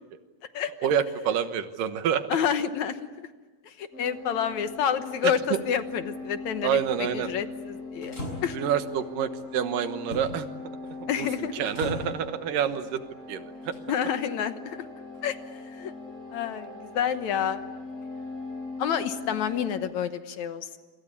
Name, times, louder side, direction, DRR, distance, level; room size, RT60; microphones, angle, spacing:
voice 1, 0.8-2.3 5.2-5.3 6.6-7.3 8.5-10.5 11.0-13.0 13.3-13.7, right 8 dB, 80° right, 10 dB, 2.9 m, -28 dB
voice 2, 2.3-3.0 3.7-8.6 11.1-11.5 13.9-14.8 15.2-15.4 15.8-15.9 16.3-17.6 18.8-20.8, left 8 dB, 65° left, 10 dB, 2.3 m, -29 dB
sound 1, 3.9-19.8, left 3 dB, 20° right, 8.2 m, -40 dB
sound 2, 4.7-5.1 8.0-8.9 10.1-10.5 10.8-11.1 11.4-12.2 13.6-14.1 15.1-15.2, left 1 dB, 20° left, 6.6 m, -38 dB
27.5 x 25.5 x 8.4 m, 1.3 s
omnidirectional pair, 3.8 m